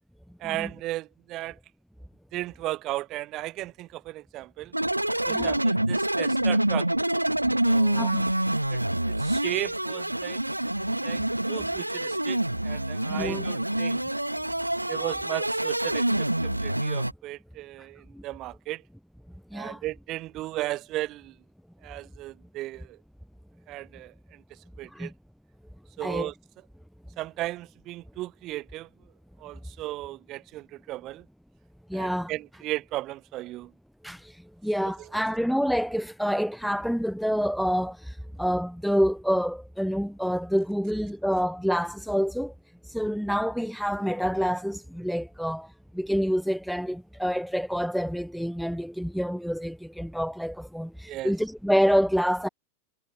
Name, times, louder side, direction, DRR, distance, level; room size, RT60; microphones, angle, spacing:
voice 1, 0.4-1.6 2.3-4.7 5.2-6.9 7.6-8.1 8.7-10.4 10.8-11.2 11.5-14.0 14.9-18.8 19.5-21.4 21.8-23.0 23.7-24.4 24.8-25.1 26.0-26.3 27.2-28.9 29.4-31.3 31.9-33.7 35.0-35.1 51.1-51.3, right 16 dB, 35° right, 5.5 m, -35 dB
sound 1, 4.7-17.1, right 1 dB, 85° right, 1.1 m, -26 dB
voice 2, 13.1-13.5 18.1-18.2 19.5-19.8 24.9-25.1 26.0-26.3 31.9-32.3 34.0-42.5 42.8-52.5, equal, ahead, 1.4 m, -27 dB
figure-of-eight pair, 90°, 0 cm